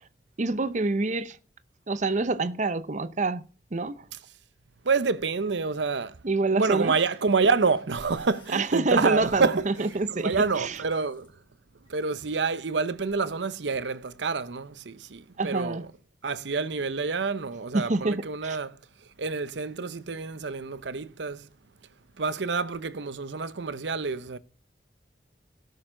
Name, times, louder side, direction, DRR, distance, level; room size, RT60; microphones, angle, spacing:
voice 1, 0.4-1.4 1.9-3.4 3.7-4.1 6.2-7.0 8.5-10.8 15.4-15.9 17.7-18.6, right 3 dB, 40° right, 0.7 m, -27 dB
voice 2, 4.8-6.2 6.5-11.3 11.9-15.9 16.2-18.8 19.2-21.5 22.2-24.4, right 4 dB, 80° right, 0.8 m, -28 dB
sound 1, 6.5-6.6 7.1-7.4 7.7-11.3 11.8-12.5, left 2 dB, 30° left, 6.9 m, -57 dB
17.5 x 6.7 x 3.8 m
head